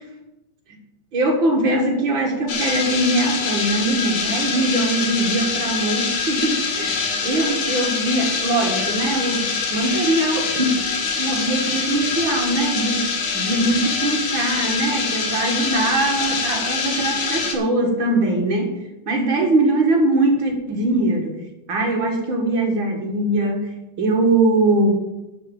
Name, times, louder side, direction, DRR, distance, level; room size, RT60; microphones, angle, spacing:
voice 1, 1.1-10.9 11.2-18.7 19.1-21.4 21.7-24.9, right 2 dB, 45° right, 1 dB, 2.4 m, -21 dB
sound 1, 2.5-17.6, left 5 dB, 75° left, 3.2 m, -24 dB
11.5 x 6.1 x 7.4 m, 0.97 s
omnidirectional pair, 3.5 m